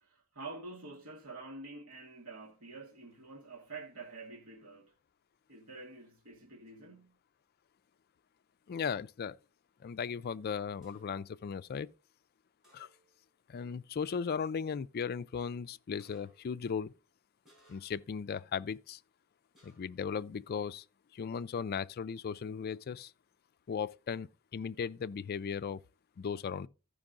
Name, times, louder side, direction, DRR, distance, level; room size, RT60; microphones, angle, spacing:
voice 1, 0.0-4.9 5.5-7.1, right 3 dB, 75° right, 1.3 m, -48 dB
voice 2, 8.7-9.4 9.8-11.9 12.7-12.9 13.5-16.9 17.7-19.0 19.6-20.8 21.1-23.1 23.7-25.8 26.2-26.7, left 6 dB, 45° left, 0.4 m, -37 dB
sound 1, 10.8-11.3 12.6-13.2 13.6-13.7 14.1-14.5 16.0-16.6 17.4-18.1 19.5-20.1, right 1 dB, ahead, 4.5 m, -66 dB
14.0 x 5.3 x 3.8 m
head